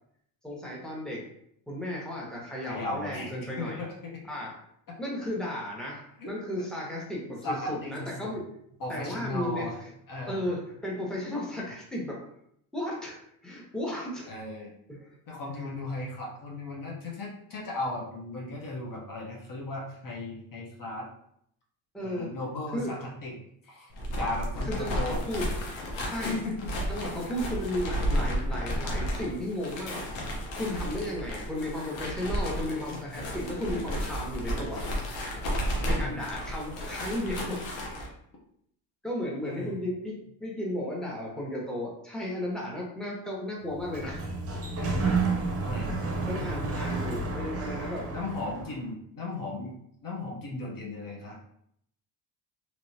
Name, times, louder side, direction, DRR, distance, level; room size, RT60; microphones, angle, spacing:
voice 1, 0.4-1.2 1.7-3.8 4.3-4.5 5.0-8.4 8.9-9.9 10.3-12.3 12.7-13.2 13.4-14.3 14.9-15.2 15.6-15.7 21.9-22.3 22.7-22.9 24.7-26.4 26.9-30.0 30.5-34.9 35.8-37.6 37.9-38.0 39.0-44.2 46.1-48.1, left 1 dB, ahead, -4 dB, 1.1 m, -34 dB
voice 2, 2.6-4.1 6.2-6.3 7.4-8.3 8.8-9.8 10.1-10.4 14.3-14.7 15.3-21.1 22.0-23.3 23.6-25.2 26.2-26.5 27.0-27.1 32.9-33.0 33.7-33.8 35.9-36.3 39.4-39.8 44.8-45.1 45.6-46.0 48.1-49.7 50.0-51.4, left 2 dB, 50° left, -2 dB, 1.0 m, -36 dB
sound 1, 23.9-38.1, equal, 80° left, 1.0 m, -33 dB
Sliding door, 43.6-48.8, right 3 dB, 35° right, 0.8 m, -31 dB
3.0 x 2.9 x 2.8 m, 0.71 s
supercardioid pair, 75°, 44 cm